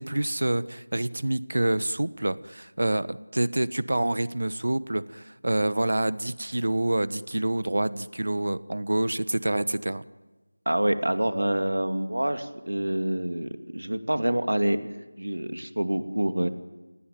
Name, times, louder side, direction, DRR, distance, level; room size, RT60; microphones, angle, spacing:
voice 1, 0.0-10.0, right 1 dB, 60° right, 16 dB, 1.3 m, -27 dB
voice 2, 10.7-14.8 15.2-16.5, right 1 dB, 80° right, 8 dB, 2.7 m, -26 dB
30.0 x 19.0 x 9.4 m, 1.2 s
figure-of-eight pair, 175°, 0 cm